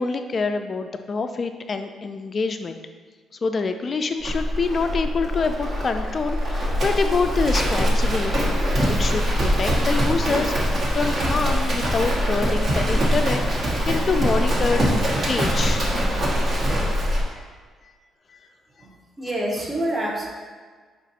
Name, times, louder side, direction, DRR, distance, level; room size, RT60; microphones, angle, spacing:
voice 1, 0.0-2.8 3.4-14.9 15.2-16.0 17.3-17.5 18.3-18.4, left 4 dB, 40° left, 7 dB, 0.3 m, -26 dB
Livestock farm animals working animals, 4.2-17.2, equal, 50° right, 1.1 m, -22 dB
voice 2, 18.8-20.3, right 1 dB, 20° right, -2 dB, 0.9 m, -27 dB
5.1 x 2.4 x 4.1 m, 1.5 s
cardioid pair, 90°, 0 cm